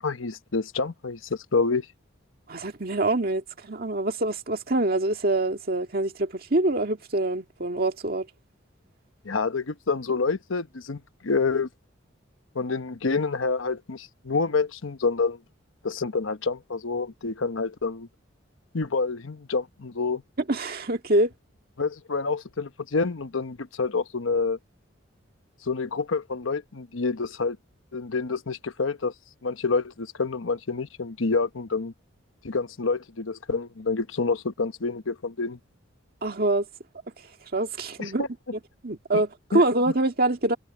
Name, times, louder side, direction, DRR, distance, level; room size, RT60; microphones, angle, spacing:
voice 1, 0.0-1.9 9.2-11.7 12.5-15.4 15.8-18.1 18.7-20.2 21.8-24.6 25.6-27.6 27.9-29.1 29.4-31.9 32.4-35.6 38.0-38.3 39.1-39.2 39.5-39.6, left 4 dB, 90° left, 1.0 m, -28 dB
voice 2, 2.5-8.3 20.5-21.3 36.2-36.7 37.5-38.3 38.8-40.6, right 2 dB, 50° right, 1.9 m, -25 dB
head